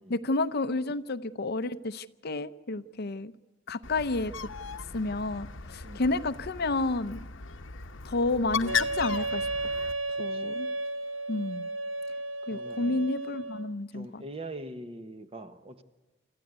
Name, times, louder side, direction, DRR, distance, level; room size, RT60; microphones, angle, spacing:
voice 1, 0.1-3.3 3.7-4.3 4.9-7.2 8.0-9.4 10.2-10.7 11.3-11.7 12.5-14.2, left 2 dB, 55° left, 0.7 m, -30 dB
Bird, 3.8-9.9, left 6 dB, 75° left, 1.0 m, -36 dB
voice 2, 5.8-6.2 10.1-10.6 12.4-13.1 13.9-15.8, right 1 dB, 30° right, 1.3 m, -43 dB
Wind instrument woodwind instrument, 8.7-13.7, right 2 dB, 85° right, 1.4 m, -33 dB
26.0 x 14.5 x 8.1 m
head